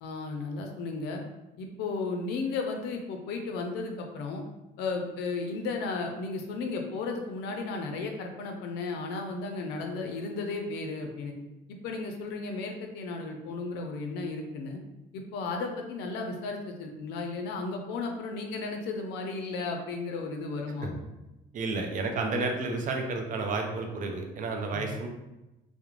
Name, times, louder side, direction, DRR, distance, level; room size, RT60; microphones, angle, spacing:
voice 1, 0.0-1.2 1.6-4.4 4.8-11.3 11.7-14.8 15.1-21.0 24.7-24.9, left 3 dB, 85° left, 3 dB, 0.4 m, -34 dB
voice 2, 21.5-25.1, right 3 dB, 50° right, 3 dB, 0.5 m, -31 dB
2.4 x 2.0 x 3.0 m, 0.97 s
cardioid pair, 110°, 17 cm